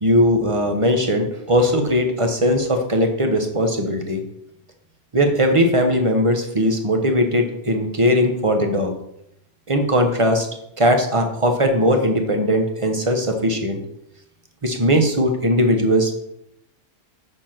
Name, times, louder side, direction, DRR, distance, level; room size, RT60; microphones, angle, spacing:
voice 1, 0.0-4.2 5.1-8.9 9.7-10.5 10.8-13.8 14.6-16.1, equal, 25° right, 4 dB, 1.0 m, -19 dB
7.1 x 4.4 x 5.9 m, 0.79 s
omnidirectional pair, 1.3 m